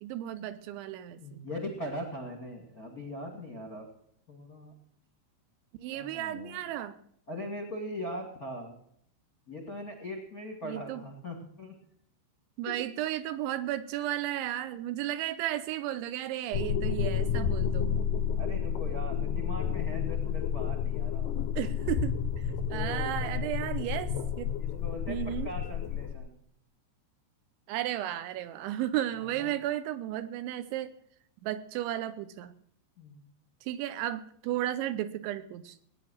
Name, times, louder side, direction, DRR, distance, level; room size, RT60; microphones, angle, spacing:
voice 1, 0.0-1.4 5.8-7.0 10.6-11.0 12.6-18.0 21.6-24.5 25.1-25.5 27.7-30.9 31.4-32.5 33.6-35.8, right 13 dB, 80° right, 12 dB, 2.9 m, -34 dB
voice 2, 1.2-3.8 4.3-4.7 5.9-6.6 7.3-8.8 9.5-11.7 12.6-12.7 18.3-21.5 22.5-23.5 24.6-26.4 29.2-29.5 33.0-33.3, left 1 dB, 45° left, 4 dB, 1.1 m, -40 dB
sound 1, 16.5-26.1, left 7 dB, 80° left, 1.9 m, -31 dB
18.5 x 9.8 x 6.3 m, 0.67 s
omnidirectional pair, 5.7 m